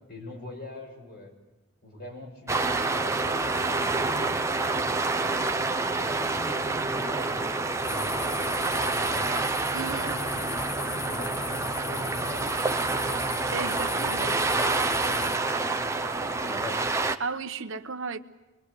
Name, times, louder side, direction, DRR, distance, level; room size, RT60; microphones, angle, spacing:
voice 1, 0.1-1.3 1.8-5.6 5.9-9.4 9.7-13.2 13.7-16.0 16.4-16.8, left 1 dB, 45° left, 6.2 m, -43 dB
sound 1, 2.5-17.2, right 3 dB, 15° right, 0.8 m, -28 dB
sound 2, 7.8-15.4, left 7 dB, 85° left, 1.3 m, -39 dB
voice 2, 9.7-10.2 13.5-14.4 17.2-18.2, right 4 dB, 60° right, 1.1 m, -34 dB
25.5 x 22.5 x 8.4 m
head